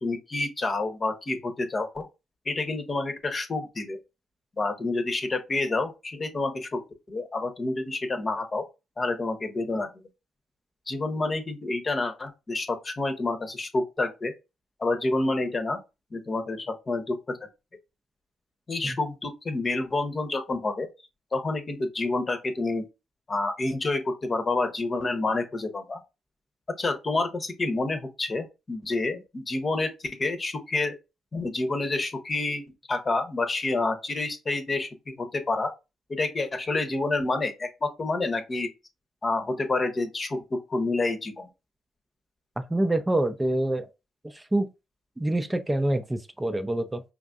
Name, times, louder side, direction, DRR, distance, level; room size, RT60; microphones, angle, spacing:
voice 1, 0.0-2.1 2.5-4.0 4.6-8.7 9.0-9.9 10.9-14.3 14.8-15.8 16.1-17.4 18.7-20.9 21.3-22.9 23.3-26.0 26.7-29.9 30.2-31.0 31.3-35.7 36.1-38.7 39.2-41.5, left 2 dB, 35° left, 0.9 m, -28 dB
voice 2, 42.7-43.9 44.2-44.7 45.2-47.0, right 1 dB, 15° right, 0.6 m, -26 dB
5.2 x 2.5 x 2.4 m
hypercardioid pair, 45°, 0 cm